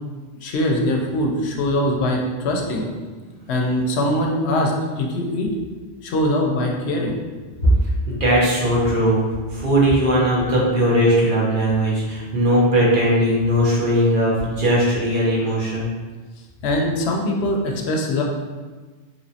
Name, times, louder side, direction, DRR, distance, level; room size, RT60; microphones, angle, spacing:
voice 1, 0.4-2.9 3.5-5.5 6.0-7.2 16.6-18.2, left 1 dB, 80° left, 0 dB, 0.8 m, -22 dB
voice 2, 8.1-9.2 9.5-15.9, equal, 55° right, -5 dB, 0.9 m, -18 dB
3.1 x 3.0 x 2.7 m, 1.3 s
omnidirectional pair, 1.1 m